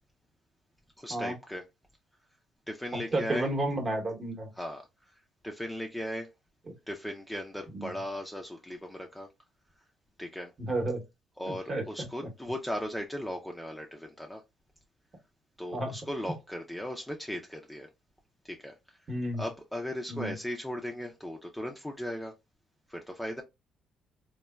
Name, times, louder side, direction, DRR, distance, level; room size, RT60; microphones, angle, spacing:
voice 1, 1.0-1.6 2.7-3.5 4.6-4.8 5.4-6.3 6.9-9.3 10.2-10.5 11.4-14.4 15.6-17.9 18.4-18.8 19.4-22.3 22.9-23.4, left 1 dB, 5° left, 0.4 m, -37 dB
voice 2, 3.1-4.5 7.7-7.9 10.6-11.0 11.7-11.8 15.7-15.9 19.1-19.4 20.1-20.3, right 1 dB, 35° right, 0.9 m, -31 dB
3.2 x 2.1 x 2.2 m
cardioid pair, 105°, 0 cm